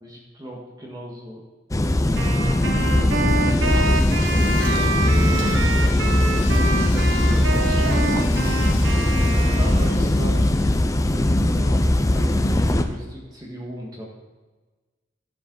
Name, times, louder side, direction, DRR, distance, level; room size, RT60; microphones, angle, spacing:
voice 1, 0.0-1.4 2.9-6.0 6.3-8.7 9.5-10.4 11.1-14.1, equal, 20° right, -2 dB, 1.6 m, -38 dB
sound 1, 1.7-12.8, left 1 dB, 15° left, 0.5 m, -19 dB
Wind instrument woodwind instrument, 2.1-10.3, right 3 dB, 75° right, 1.1 m, -28 dB
Drill, 3.4-11.3, left 5 dB, 70° left, 1.8 m, -40 dB
12.0 x 7.6 x 4.0 m, 1.3 s
head